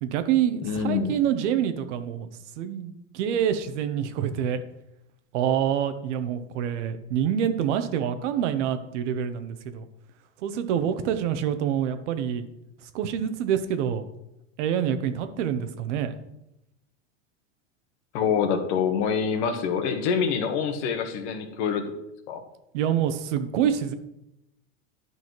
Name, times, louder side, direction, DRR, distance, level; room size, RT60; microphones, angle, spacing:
voice 1, 0.0-2.3 2.6-4.6 5.3-9.9 10.4-12.4 12.9-14.0 14.6-16.2 22.7-23.9, right 9 dB, 70° right, 10 dB, 0.9 m, -26 dB
voice 2, 0.6-1.1 18.1-21.8 22.3-22.4, left 6 dB, 65° left, 7 dB, 1.3 m, -26 dB
10.5 x 5.6 x 3.1 m, 0.86 s
supercardioid pair, 115°, 37 cm